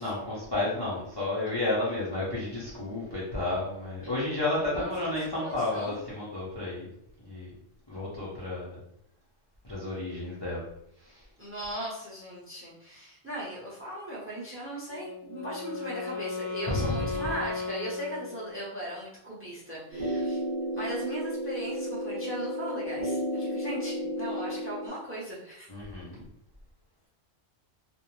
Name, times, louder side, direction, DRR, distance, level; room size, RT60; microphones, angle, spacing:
voice 1, 0.0-6.9 7.2-7.5 7.9-8.8 9.6-10.7 11.1-11.2 16.7-17.2 25.7-26.2, left 2 dB, 30° left, -8 dB, 0.5 m, -32 dB
voice 2, 5.4-6.0 11.4-20.4 20.7-25.7, right 1 dB, 15° right, -6 dB, 0.6 m, -38 dB
Wind instrument woodwind instrument, 14.9-18.8, left 4 dB, 65° left, 0.9 m, -36 dB
sound 1, 19.9-24.9, equal, 35° right, 1.2 m, -32 dB
2.5 x 2.0 x 3.0 m, 0.74 s
omnidirectional pair, 1.2 m